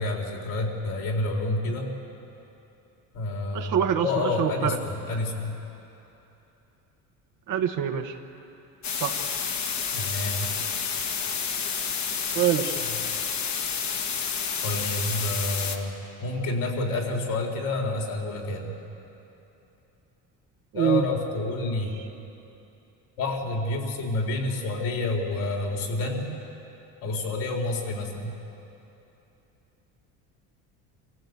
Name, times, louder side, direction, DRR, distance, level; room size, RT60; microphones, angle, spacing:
voice 1, 0.0-1.9 3.1-5.6 9.9-10.5 14.6-18.7 20.7-21.9 23.2-26.3 27.0-28.3, left 2 dB, 70° left, 0 dB, 4.2 m, -29 dB
voice 2, 3.5-4.8 7.5-8.1 9.0-9.2 12.3-12.8 20.7-21.0, right 9 dB, 60° right, 3 dB, 1.4 m, -25 dB
sound 1, 8.8-15.8, left 6 dB, 50° left, 1.9 m, -29 dB
24.5 x 15.5 x 8.2 m, 2.9 s
supercardioid pair, 100°, 36 cm